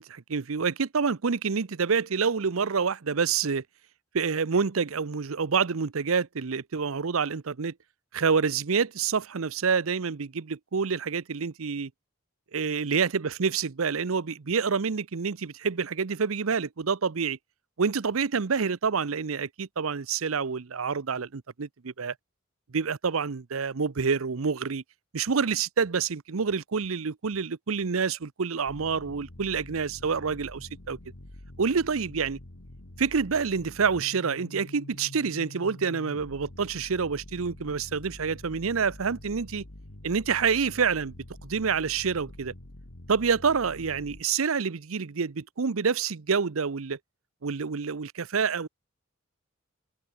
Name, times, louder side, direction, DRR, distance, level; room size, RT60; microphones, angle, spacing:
voice 1, 0.0-3.6 4.1-7.7 8.1-11.9 12.5-17.4 17.8-22.1 22.7-24.8 25.1-31.0 31.6-32.4 33.0-39.6 40.0-41.1 41.4-42.5 43.1-47.0 47.4-48.7, right 5 dB, 80° right, 0.7 m, -27 dB
sound 1, 28.7-44.2, left 1 dB, 85° left, 2.3 m, -46 dB
open air
head